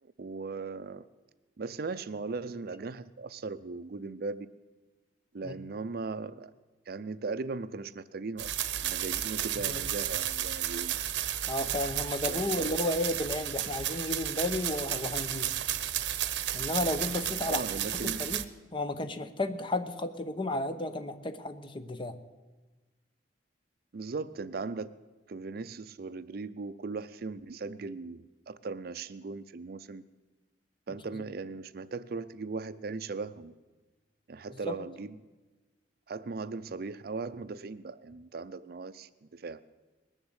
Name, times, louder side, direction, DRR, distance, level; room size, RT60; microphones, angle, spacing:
voice 1, 0.0-1.1 1.6-4.5 5.3-6.5 6.9-8.6 8.8-10.9 12.2-12.7 17.4-18.3 23.9-24.9 25.3-30.0 30.9-33.5 34.3-35.2 36.1-39.6, right 4 dB, 55° right, 14 dB, 0.5 m, -38 dB
sound 1, 8.4-18.4, right 11 dB, 90° right, 0.8 m, -33 dB
voice 2, 11.5-15.5 16.5-17.6 17.9-18.4 18.7-22.2 34.7-34.8, left 2 dB, 30° left, 10 dB, 0.9 m, -33 dB
20.0 x 7.2 x 8.0 m, 1.2 s
head